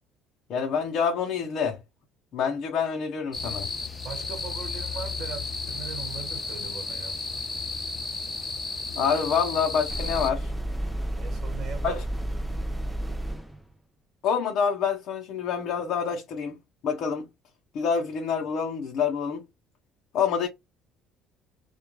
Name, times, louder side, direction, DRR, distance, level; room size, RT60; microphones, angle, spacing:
voice 1, 0.5-1.8 2.3-3.7 8.9-10.5 11.8-12.0 14.2-16.6 16.8-17.3 17.7-19.4 20.1-20.5, left 6 dB, 60° left, 0.6 m, -27 dB
sound 1, 3.3-10.3, left 3 dB, 15° left, 0.8 m, -33 dB
voice 2, 4.0-7.2 11.2-12.0, right 7 dB, 55° right, 1.2 m, -40 dB
sound 2, 9.9-13.6, right 1 dB, ahead, 0.4 m, -31 dB
2.3 x 2.2 x 3.0 m
cardioid pair, 110°, 0 cm